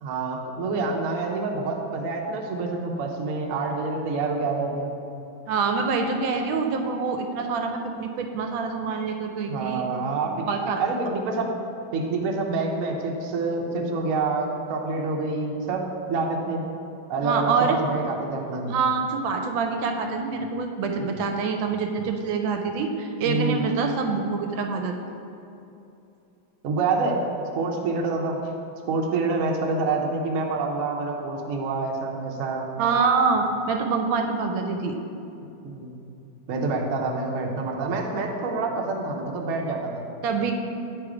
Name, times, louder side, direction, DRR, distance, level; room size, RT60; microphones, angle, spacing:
voice 1, 0.0-4.9 9.5-10.5 10.8-11.5 11.9-15.8 16.1-16.7 17.1-18.7 23.2-23.7 26.6-27.2 27.5-28.4 28.9-32.7 35.4-35.9 36.5-40.0, right 3 dB, 60° right, 0 dB, 0.8 m, -27 dB
voice 2, 5.5-9.9 10.3-10.8 17.2-17.8 18.7-24.9 32.8-35.0 40.2-40.5, right 5 dB, 80° right, 4 dB, 1.3 m, -25 dB
9.3 x 3.4 x 4.8 m, 2.8 s
omnidirectional pair, 2.2 m